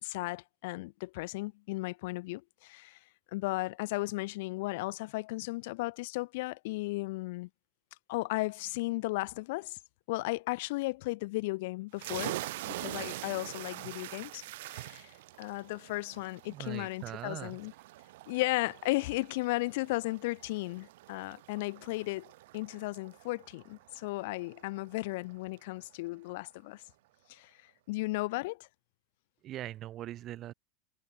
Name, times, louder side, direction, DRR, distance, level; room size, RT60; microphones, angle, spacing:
voice 1, 0.0-3.0 3.3-7.5 8.1-9.8 10.1-12.4 12.7-17.7 18.3-22.3 22.5-26.8 27.3-27.5 27.9-28.7, left 22 dB, 70° left, 1.8 m, -35 dB
sound 1, 12.0-25.3, right 18 dB, 75° right, 4.6 m, -45 dB
voice 2, 16.5-17.6 29.4-30.5, right 13 dB, 35° right, 7.1 m, -41 dB
supercardioid pair, 145°, 0 cm